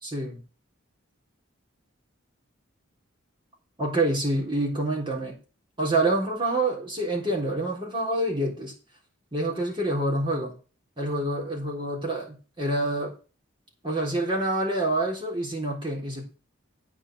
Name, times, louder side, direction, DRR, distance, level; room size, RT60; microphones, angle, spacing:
voice 1, 0.0-0.4 3.8-5.4 5.8-8.7 9.3-10.5 11.0-13.1 13.8-16.2, right 1 dB, 25° right, -2 dB, 3.8 m, -27 dB
9.1 x 5.9 x 7.6 m, 0.35 s
head